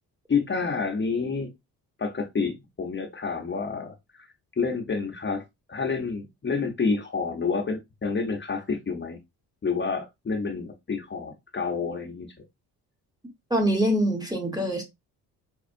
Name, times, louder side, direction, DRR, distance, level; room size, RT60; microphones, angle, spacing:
voice 1, 0.3-1.5 2.0-4.3 4.6-5.4 5.7-9.2 9.6-12.3, left 5 dB, 30° left, 0.9 m, -29 dB
voice 2, 13.5-14.9, right 1 dB, 10° right, 1.3 m, -24 dB
5.1 x 2.3 x 2.5 m
cardioid pair, 70°, 37 cm